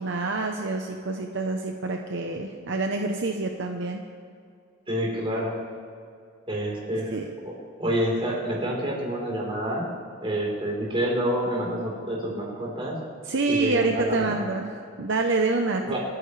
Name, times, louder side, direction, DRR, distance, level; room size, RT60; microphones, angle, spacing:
voice 1, 0.0-4.0 7.1-7.3 13.3-16.0, right 3 dB, 65° right, 3 dB, 0.8 m, -27 dB
voice 2, 4.9-5.6 6.5-7.2 7.5-9.9 10.2-13.0 13.5-14.4 15.8-16.0, equal, 25° right, -3 dB, 4.0 m, -28 dB
28.5 x 9.7 x 3.3 m, 2.3 s
head